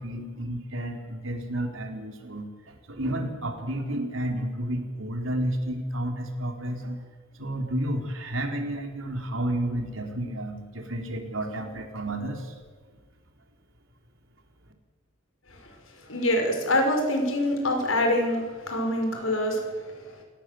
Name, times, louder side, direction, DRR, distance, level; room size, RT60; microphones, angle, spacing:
voice 1, 0.0-7.0 7.4-12.5, right 1 dB, 75° right, 3 dB, 4.1 m, -31 dB
voice 2, 16.1-19.9, left 1 dB, 85° left, 3 dB, 6.3 m, -25 dB
27.0 x 18.0 x 7.9 m, 1.5 s
head